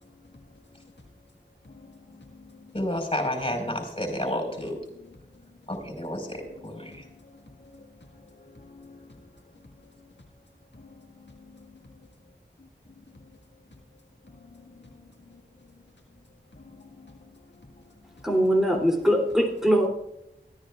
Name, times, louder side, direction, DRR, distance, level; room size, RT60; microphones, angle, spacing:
voice 1, 1.6-2.7 6.8-7.9 8.3-9.1 10.7-11.8 12.6-12.7 14.4-15.0 15.3-15.4 16.5-17.4 18.2-18.3, left 3 dB, 70° left, -1 dB, 1.8 m, -51 dB
voice 2, 2.7-4.8 5.7-7.1, left 1 dB, 30° left, 2 dB, 4.7 m, -30 dB
voice 3, 18.2-19.9, equal, ahead, -1 dB, 2.9 m, -22 dB
23.5 x 14.0 x 2.4 m, 0.83 s
wide cardioid pair, 45°, 19 cm